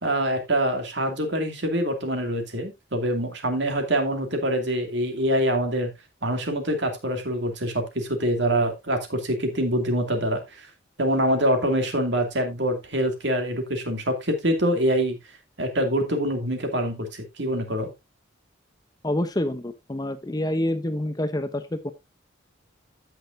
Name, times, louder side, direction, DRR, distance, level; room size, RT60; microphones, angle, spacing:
voice 1, 0.0-5.9 6.2-10.7 11.0-15.2 15.6-17.9, right 1 dB, 60° right, 5 dB, 2.4 m, -25 dB
voice 2, 19.0-21.9, left 1 dB, 20° left, 11 dB, 0.7 m, -27 dB
15.0 x 6.4 x 2.6 m, 0.21 s
head